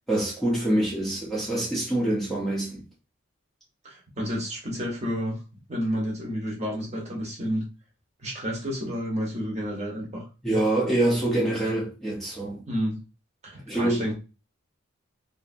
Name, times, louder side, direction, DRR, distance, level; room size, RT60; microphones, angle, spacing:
voice 1, 0.1-2.8 10.4-12.6 13.7-14.1, right 1 dB, ahead, 0.6 m, -25 dB
voice 2, 3.8-5.4 5.7-7.6 8.2-10.3 12.7-13.0 13.4-14.1, equal, 30° right, 0.9 m, -30 dB
2.7 x 2.6 x 2.5 m
head